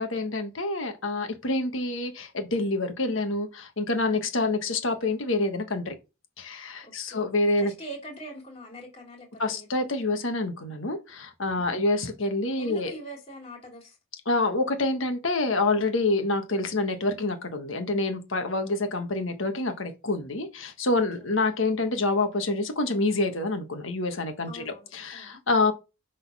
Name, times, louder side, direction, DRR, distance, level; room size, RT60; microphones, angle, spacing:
voice 1, 0.0-5.9 6.4-7.7 9.4-12.9 14.2-25.7, left 2 dB, 65° left, 1.4 m, -27 dB
voice 2, 6.8-7.3 7.6-9.7 11.6-11.8 12.6-14.0 20.9-21.3 24.5-25.4, right 1 dB, 30° left, 2.6 m, -43 dB
6.1 x 4.1 x 5.4 m
head